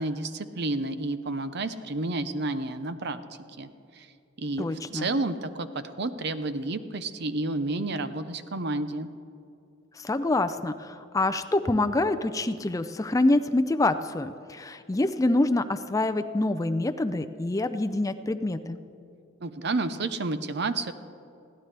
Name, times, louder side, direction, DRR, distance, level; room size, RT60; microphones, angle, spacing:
voice 1, 0.0-3.2 3.6-3.7 4.0-4.1 4.4-9.1 19.4-20.9, right 2 dB, 55° right, 11 dB, 0.7 m, -30 dB
voice 2, 4.6-5.1 10.0-18.8, left 2 dB, 15° left, 9 dB, 0.4 m, -26 dB
21.5 x 16.0 x 3.4 m, 2.6 s
head